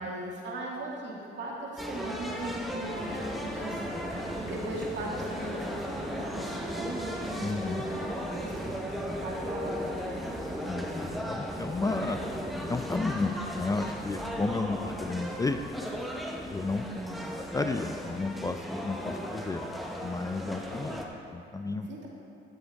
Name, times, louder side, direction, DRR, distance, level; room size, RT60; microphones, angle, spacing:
voice 1, 0.0-10.2 16.9-17.2 21.9-22.1, right 2 dB, 65° right, -3 dB, 2.0 m, -39 dB
sound 1, 1.8-21.0, equal, ahead, 1.0 m, -36 dB
sound 2, 2.9-10.7, equal, 20° right, 2.4 m, -46 dB
voice 2, 7.4-7.8 10.7-12.2 12.7-15.6 16.5-16.8 17.5-19.6 20.0-21.1 21.3-21.9, left 3 dB, 15° left, 8 dB, 0.3 m, -32 dB
13.0 x 7.4 x 3.5 m, 2.7 s
cardioid pair, 90°, 20 cm